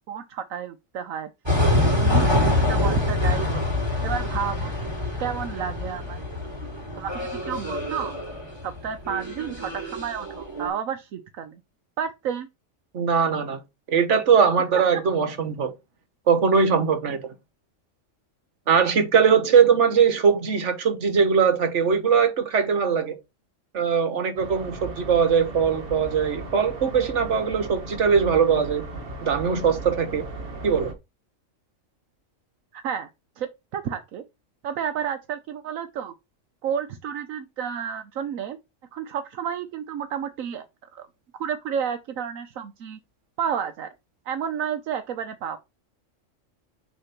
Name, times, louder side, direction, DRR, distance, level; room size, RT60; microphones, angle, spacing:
voice 1, 0.1-1.3 1.8-3.6 4.0-4.7 5.2-6.2 7.0-8.1 8.6-11.6 12.0-12.5 32.7-33.1 33.4-34.2 34.6-36.1 36.6-38.6 38.9-40.7 40.9-41.1 41.4-43.0 43.4-43.9 44.3-45.6, right 8 dB, 85° right, 1.1 m, -31 dB
sound 1, 1.5-10.7, left 2 dB, 20° right, 3.6 m, -25 dB
voice 2, 12.9-13.6 13.9-15.7 16.3-17.2 18.7-23.1 23.7-28.8 29.2-30.2 30.6-30.9, right 6 dB, 65° right, 1.5 m, -21 dB
sound 2, 24.3-30.9, right 3 dB, 45° right, 1.3 m, -37 dB
6.5 x 3.4 x 5.9 m
omnidirectional pair, 1.4 m